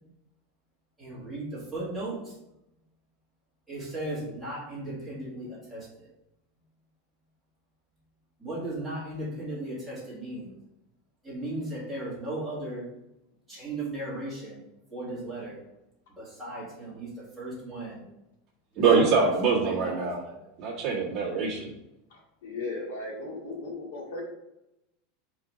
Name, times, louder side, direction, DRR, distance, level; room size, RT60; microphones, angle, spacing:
voice 1, 1.0-2.3 3.7-6.1 8.4-10.6 11.2-12.9 13.5-14.6 14.9-15.6 16.2-18.1 18.7-20.5, right 2 dB, ahead, -9 dB, 2.0 m, -36 dB
voice 2, 18.8-20.2 20.6-21.7, right 5 dB, 25° right, -5 dB, 1.6 m, -24 dB
voice 3, 22.1-24.2, left 2 dB, 80° left, -2 dB, 2.2 m, -37 dB
4.8 x 3.9 x 5.0 m, 0.88 s
supercardioid pair, 180°, 0 cm